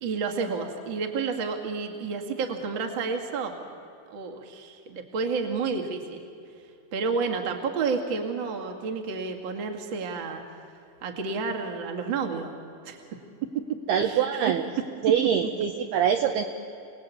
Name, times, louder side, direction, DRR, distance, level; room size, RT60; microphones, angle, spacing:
voice 1, 0.0-3.5 4.1-6.2 6.9-10.4 11.0-12.5 12.8-13.0 13.7-14.6 15.4-15.5, right 5 dB, 45° right, 3 dB, 1.6 m, -30 dB
voice 2, 13.9-14.6 15.0-16.4, right 8 dB, 75° right, 5 dB, 2.4 m, -24 dB
29.0 x 19.0 x 8.5 m, 2.7 s
omnidirectional pair, 5.7 m